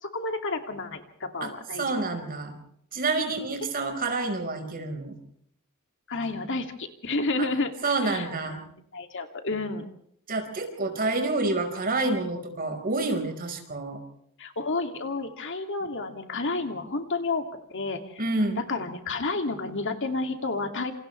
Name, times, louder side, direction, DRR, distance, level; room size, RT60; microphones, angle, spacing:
voice 1, 0.0-2.0 6.1-8.3 8.6-9.9 14.4-17.4 17.7-18.2 18.7-20.9, left 3 dB, 60° left, 5 dB, 2.6 m, -31 dB
voice 2, 1.4-2.6 2.9-5.2 7.4-7.5 7.8-8.6 10.3-14.0 18.2-18.6, right 3 dB, 40° right, 5 dB, 5.1 m, -28 dB
28.0 x 28.0 x 3.4 m, 0.69 s
head